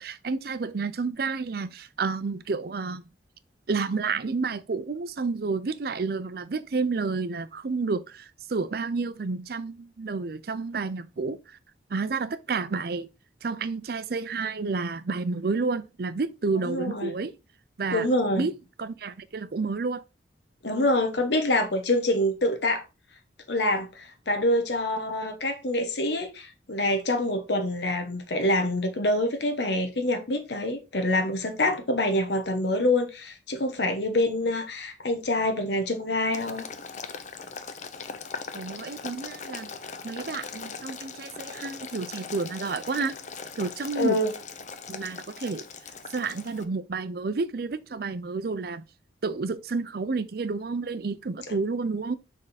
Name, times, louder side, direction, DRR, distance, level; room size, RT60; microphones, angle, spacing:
voice 1, 0.0-3.0 3.7-11.6 11.9-13.1 13.4-17.4 17.8-18.1 18.3-18.5 18.8-20.0 38.5-39.7 40.0-43.2 43.6-44.2 44.9-45.7 46.1-48.8 49.2-52.2, right 4 dB, 55° right, 0.5 m, -30 dB
voice 2, 16.6-17.1 17.9-18.4 20.6-22.8 23.5-36.6 43.9-44.3, left 1 dB, 70° left, 1.0 m, -26 dB
Boiling, 36.3-46.6, left 5 dB, 40° left, 0.6 m, -40 dB
6.5 x 3.6 x 4.1 m
head